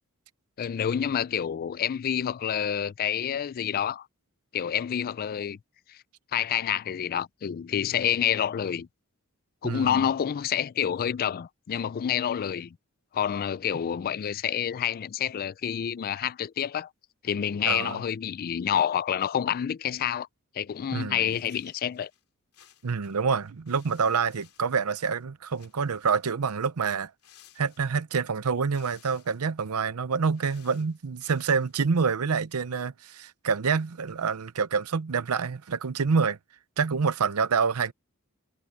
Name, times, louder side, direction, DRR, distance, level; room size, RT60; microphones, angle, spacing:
voice 1, 0.6-4.1 4.5-5.6 5.9-6.0 6.3-8.9 9.6-12.8 13.1-16.9 17.2-20.3 20.6-22.1, left 9 dB, 40° left, 0.3 m, -28 dB
voice 2, 9.6-10.1 17.7-18.0 20.9-21.2 22.8-27.1 27.6-36.4 36.8-37.9, right 5 dB, 85° right, 0.7 m, -27 dB
sound 1, 21.2-22.2 22.5-25.2 25.5-26.3 27.2-28.2 28.6-29.5 30.1-31.7, left 11 dB, 75° left, 3.4 m, -59 dB
head